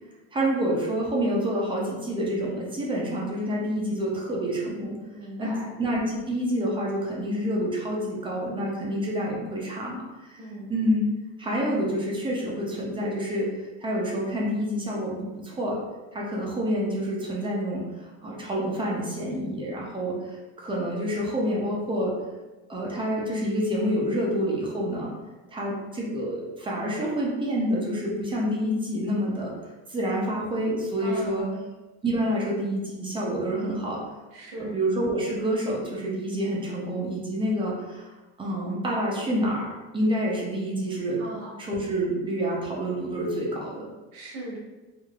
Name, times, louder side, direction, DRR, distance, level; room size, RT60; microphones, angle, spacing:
voice 1, 0.3-5.0 5.4-5.5 5.8-10.4 10.7-11.0 11.4-13.5 13.8-15.8 16.1-22.1 22.7-25.1 25.5-29.5 29.9-31.5 32.0-34.0 34.6-38.1 38.4-41.2 41.6-43.9, equal, 15° right, -4 dB, 0.4 m, -28 dB
voice 2, 5.1-5.7 10.4-10.7 31.0-31.6 34.3-34.7 41.2-41.6 44.1-44.6, right 1 dB, 85° right, -3 dB, 1.1 m, -38 dB
3.3 x 2.4 x 2.3 m, 1.1 s
cardioid pair, 145°, 34 cm